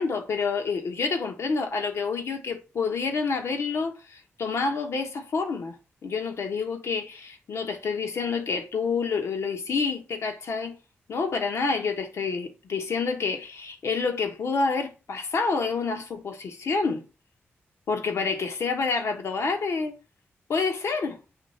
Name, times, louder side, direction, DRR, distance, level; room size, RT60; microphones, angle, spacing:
voice 1, 0.0-5.7 6.0-10.8 11.1-17.0 17.9-20.0 20.5-21.2, left 4 dB, 75° left, 1.2 m, -28 dB
7.2 x 3.1 x 4.3 m
cardioid pair, 50°, 5 cm